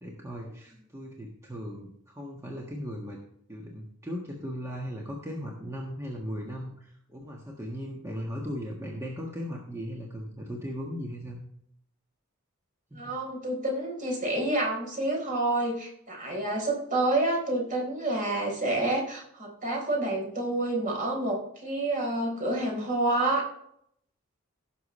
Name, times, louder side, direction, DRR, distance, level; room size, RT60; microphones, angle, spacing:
voice 1, 0.0-3.2 3.5-11.4 12.9-13.1, equal, 15° right, -2 dB, 1.5 m, -37 dB
voice 2, 12.9-23.4, right 2 dB, 40° right, -1 dB, 4.1 m, -28 dB
16.5 x 6.7 x 3.2 m, 0.69 s
head